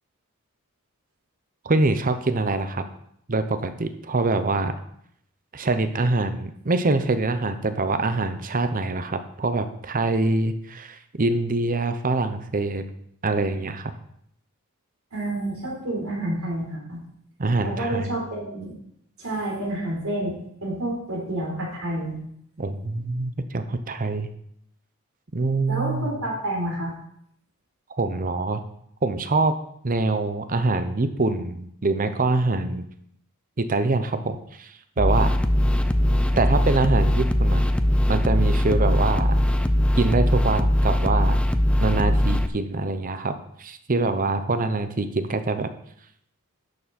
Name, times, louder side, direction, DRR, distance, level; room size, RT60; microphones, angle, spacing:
voice 1, 1.6-2.8 3.3-4.8 5.5-12.8 13.2-13.9 17.4-18.2 22.6-24.3 25.3-26.1 28.0-28.6 29.0-29.6 29.8-32.9 33.6-35.3 36.4-37.7 38.1-39.4 40.0-41.4 41.8-43.3 43.6-45.7, right 3 dB, 40° right, 10 dB, 0.8 m, -24 dB
voice 2, 15.1-17.0 17.6-18.7 19.2-22.2 25.7-26.9, right 1 dB, 75° right, -2 dB, 3.9 m, -29 dB
sound 1, 35.0-42.5, left 1 dB, 5° left, 0.4 m, -20 dB
11.5 x 7.1 x 4.3 m, 0.70 s
head